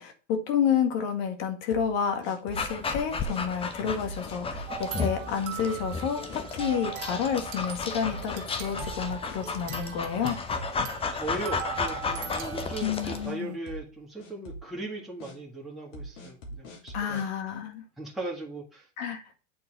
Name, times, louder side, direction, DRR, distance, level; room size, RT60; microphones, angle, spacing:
voice 1, 0.0-10.4 12.8-13.6 16.9-17.8 19.0-19.2, left 7 dB, 55° left, 1.9 m, -30 dB
sound 1, 1.7-2.8 3.3-3.4 4.0-4.8 5.3-5.4 5.8-6.0 6.3-6.8 7.3-7.5 8.1-10.0 10.2-11.0 11.3-11.4 12.0-13.3 13.7-13.9 14.2-14.7 15.2-15.3 15.9-17.3, right 1 dB, 70° left, 2.6 m, -43 dB
Dog, 2.5-13.3, left 4 dB, 15° left, 0.7 m, -34 dB
sound 2, 4.7-13.6, right 10 dB, 60° right, 1.6 m, -41 dB
voice 2, 10.7-17.2 18.0-18.9, right 2 dB, ahead, 1.7 m, -38 dB
8.7 x 4.0 x 3.8 m
hypercardioid pair, 110°, 38 cm